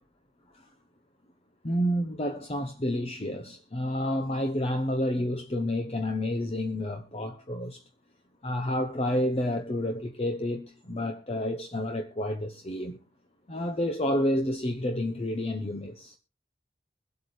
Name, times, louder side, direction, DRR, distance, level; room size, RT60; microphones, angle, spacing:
voice 1, 1.6-7.8 8.4-13.0 13.5-16.2, left 1 dB, 35° left, 0.8 m, -30 dB
23.5 x 8.3 x 3.2 m
head